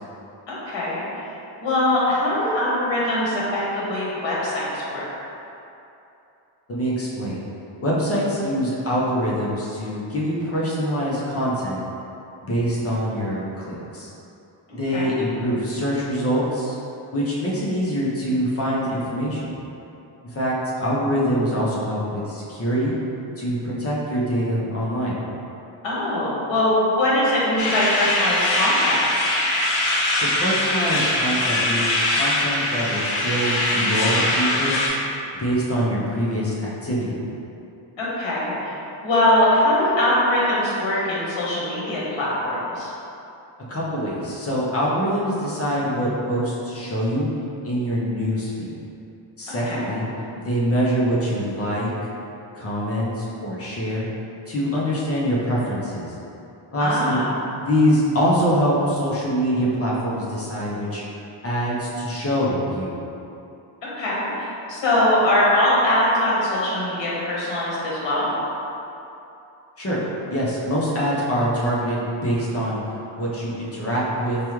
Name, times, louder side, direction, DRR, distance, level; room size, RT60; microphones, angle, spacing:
voice 1, 0.5-1.2 1.6-5.0 14.7-15.1 25.8-29.0 38.0-38.7 39.0-42.9 49.5-49.9 56.8-57.2 63.9-68.3, left 1 dB, 70° left, -7 dB, 1.3 m, -22 dB
voice 2, 6.7-7.4 7.8-11.8 12.4-14.1 14.7-16.8 17.1-19.6 20.2-22.9 23.4-25.2 30.2-34.9 35.4-37.2 43.7-47.3 47.6-48.8 49.4-50.1 50.4-51.9 52.5-54.1 54.5-56.1 56.7-57.2 57.6-61.0 61.4-63.0 69.8-70.0 70.3-72.8 73.2-74.4, equal, 30° left, -6 dB, 0.7 m, -24 dB
sound 1, 27.6-34.9, left 1 dB, 85° left, 0.8 m, -22 dB
4.9 x 2.4 x 3.0 m, 2.8 s
wide cardioid pair, 135°, 46 cm